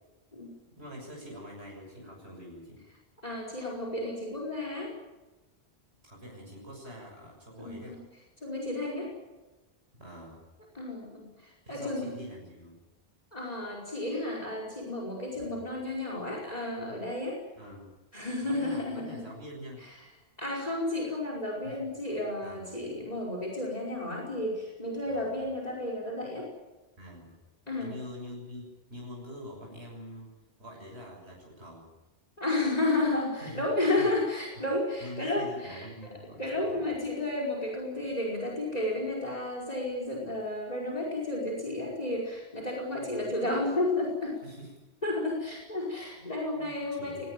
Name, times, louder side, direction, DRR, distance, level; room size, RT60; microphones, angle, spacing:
voice 1, 0.8-2.8 6.0-8.0 10.0-10.4 11.6-12.8 15.3-15.6 17.5-17.9 18.4-19.9 21.6-21.9 22.4-22.7 25.0-25.5 27.0-27.4 27.8-30.3 30.6-31.9 33.4-33.6 34.0-34.1 35.0-36.9 44.4-44.7 46.2-47.3, equal, 85° right, -1 dB, 7.2 m, -45 dB
voice 2, 3.2-4.9 7.6-8.0 8.4-9.1 10.7-12.1 13.3-17.4 18.1-19.3 19.8-19.9 20.4-26.5 27.7-27.9 32.4-35.9 36.4-44.4 45.0-47.3, left 2 dB, 40° left, 0 dB, 5.2 m, -32 dB
22.0 x 19.5 x 9.1 m, 1.1 s
omnidirectional pair, 1.1 m